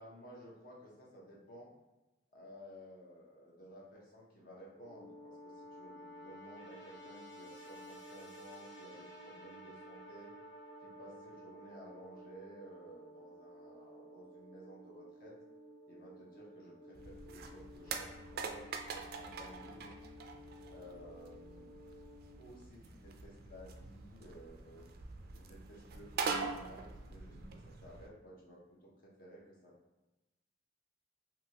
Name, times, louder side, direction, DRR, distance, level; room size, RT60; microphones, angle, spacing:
voice 1, 0.0-1.7 2.3-10.3 10.8-15.4 15.9-19.9 20.7-21.7 22.4-24.8 25.3-29.7, equal, 50° left, -4 dB, 0.8 m, -55 dB
sound 1, 4.7-22.4, equal, 75° left, 0.9 m, -53 dB
sound 2, 16.9-28.1, right 4 dB, 55° right, 0.3 m, -44 dB
2.8 x 2.7 x 2.8 m, 1.0 s
head